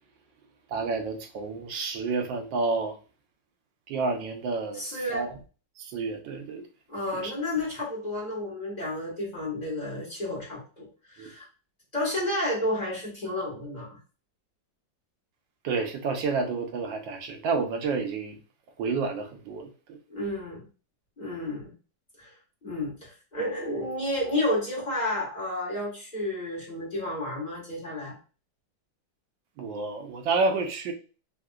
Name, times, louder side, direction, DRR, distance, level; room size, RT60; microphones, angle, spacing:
voice 1, 0.7-3.0 3.9-5.3 5.8-6.7 7.1-7.3 11.2-11.3 15.6-18.4 18.8-20.0 29.6-30.9, right 4 dB, 80° right, 5 dB, 1.3 m, -30 dB
voice 2, 4.7-5.3 6.9-11.5 11.9-14.0 20.1-20.7 21.2-21.7 22.2-22.3 22.6-28.2, left 1 dB, 25° left, -5 dB, 1.3 m, -31 dB
3.6 x 2.8 x 2.3 m, 0.35 s
omnidirectional pair, 2.1 m